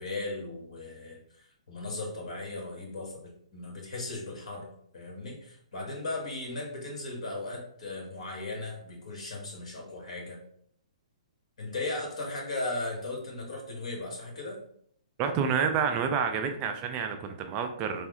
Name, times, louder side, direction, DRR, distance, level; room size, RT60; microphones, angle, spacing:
voice 1, 0.0-4.7 4.9-10.4 11.6-14.6, left 2 dB, 60° left, -1 dB, 1.5 m, -37 dB
voice 2, 15.2-18.1, right 6 dB, 30° right, 6 dB, 0.3 m, -29 dB
3.5 x 2.0 x 3.6 m, 0.65 s
figure-of-eight pair, 130°, 4 cm